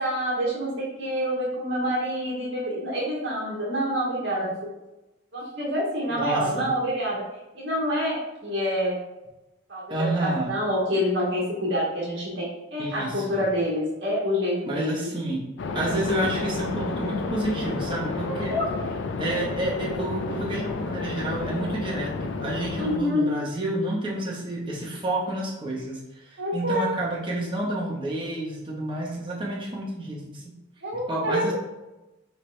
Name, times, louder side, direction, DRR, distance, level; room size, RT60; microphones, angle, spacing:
voice 1, 0.0-4.5 5.3-7.2 7.5-9.0 9.7-15.1 18.2-18.6 22.7-23.3 26.4-26.9 30.8-31.5, equal, 60° right, -5 dB, 1.4 m, -27 dB
voice 2, 6.1-6.7 9.9-10.5 12.8-13.4 14.6-15.5 15.7-18.5 19.2-30.5 31.1-31.5, right 1 dB, 25° right, -4 dB, 0.9 m, -29 dB
sound 1, 15.6-23.0, left 3 dB, 60° left, 0.3 m, -31 dB
4.4 x 3.3 x 3.1 m, 0.99 s
head